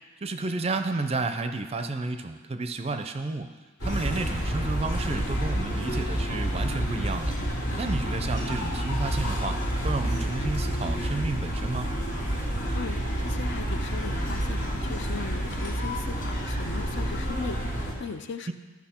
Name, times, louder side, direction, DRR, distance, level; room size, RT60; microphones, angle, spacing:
voice 1, 0.2-3.5 3.8-7.3 7.8-9.6 9.8-11.9 18.5-18.6, right 3 dB, 30° right, 8 dB, 0.4 m, -31 dB
sound 1, 3.8-17.9, equal, 75° left, 2.2 m, -29 dB
voice 2, 13.2-18.5, left 5 dB, 55° left, 9 dB, 0.4 m, -38 dB
14.0 x 6.0 x 4.3 m, 1.3 s
head